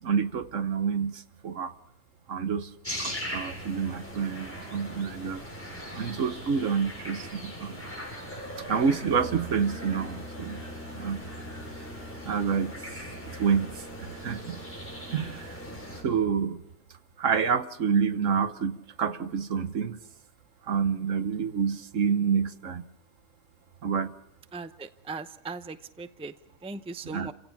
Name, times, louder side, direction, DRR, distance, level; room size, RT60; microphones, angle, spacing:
voice 1, 0.0-1.7 2.3-2.7 3.0-5.4 5.9-7.8 8.7-10.6 10.9-11.2 12.2-12.8 13.2-14.6 15.1-15.6 16.0-16.6 17.2-20.0 20.7-22.8 23.8-24.1 27.0-27.3, right 6 dB, 70° right, 1.4 m, -28 dB
sound 1, 2.8-16.0, equal, 10° left, 7.0 m, -40 dB
Brass instrument, 9.0-16.5, equal, 40° left, 3.5 m, -44 dB
voice 2, 24.5-26.3 26.6-27.3, right 3 dB, 5° right, 0.6 m, -39 dB
29.5 x 16.5 x 6.0 m
omnidirectional pair, 1.4 m